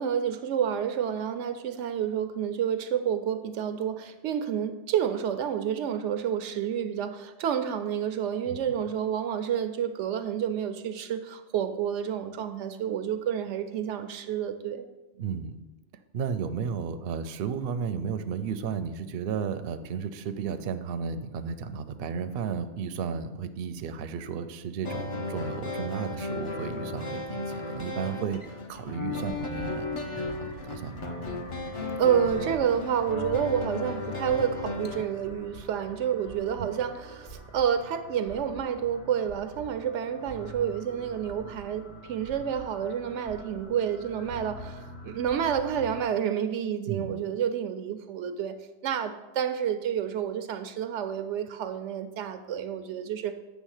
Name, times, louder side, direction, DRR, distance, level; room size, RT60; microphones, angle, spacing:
voice 1, 0.0-14.8 32.0-48.6 48.8-53.4, right 8 dB, 90° right, 10 dB, 0.9 m, -29 dB
voice 2, 15.2-15.6 16.1-28.4 28.7-29.9 30.3-31.0 36.6-36.7 46.9-47.1, right 6 dB, 65° right, 10 dB, 0.7 m, -33 dB
sound 1, 24.8-35.1, left 3 dB, 35° left, 0.6 m, -35 dB
sound 2, 29.0-46.0, right 2 dB, 55° left, 1.4 m, -46 dB
8.3 x 3.4 x 6.4 m, 1.1 s
omnidirectional pair, 1.2 m